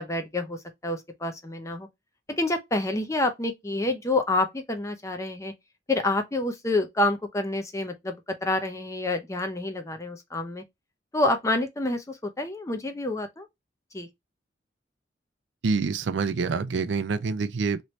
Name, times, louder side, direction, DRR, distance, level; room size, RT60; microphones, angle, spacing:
voice 1, 0.0-1.9 2.3-5.5 5.9-8.2 8.4-10.6 11.1-13.5 13.9-14.1, left 2 dB, 15° left, 0.5 m, -28 dB
voice 2, 15.6-17.8, right 4 dB, 75° right, 0.4 m, -26 dB
3.1 x 2.7 x 3.1 m
head